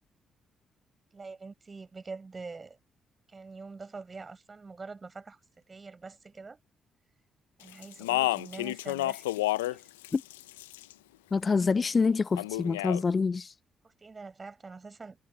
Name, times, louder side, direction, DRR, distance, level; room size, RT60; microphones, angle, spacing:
voice 1, 1.1-2.8 3.3-5.4 5.7-6.6 7.6-9.8 13.8-15.2, right 4 dB, 35° right, 6.3 m, -45 dB
Speech, 7.8-9.8 10.0-10.9 12.4-13.0, left 17 dB, 85° left, 0.6 m, -30 dB
voice 2, 11.3-13.5, left 4 dB, 40° left, 0.5 m, -26 dB
hypercardioid pair, 45°, 0 cm